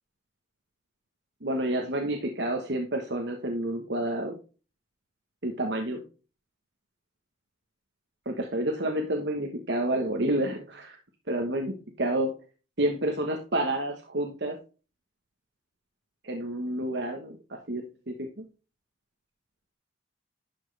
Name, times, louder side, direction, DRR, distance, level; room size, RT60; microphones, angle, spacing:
voice 1, 1.4-4.4 5.4-6.0 8.2-11.0 11.3-12.3 12.8-14.6 16.2-18.4, right 1 dB, 65° right, 3 dB, 1.3 m, -29 dB
11.5 x 6.2 x 3.4 m, 0.34 s
head